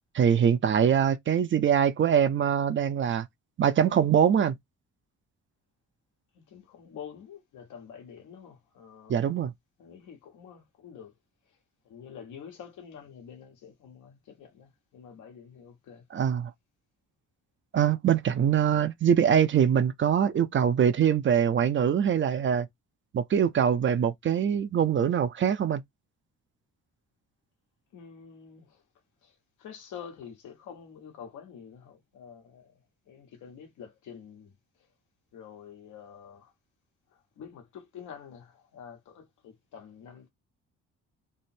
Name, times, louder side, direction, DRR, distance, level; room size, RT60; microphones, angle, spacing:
voice 1, 0.1-3.3 3.6-4.6 9.1-9.5 16.1-16.5 17.7-22.7 23.1-25.8, right 8 dB, 40° right, 0.5 m, -23 dB
voice 2, 6.3-9.2 9.8-11.1 11.8-16.0 27.9-28.8 29.2-32.7 33.1-34.5 35.3-36.5 37.4-40.3, left 7 dB, 80° left, 1.2 m, -47 dB
3.3 x 2.0 x 4.2 m
cardioid pair, 90°, 30 cm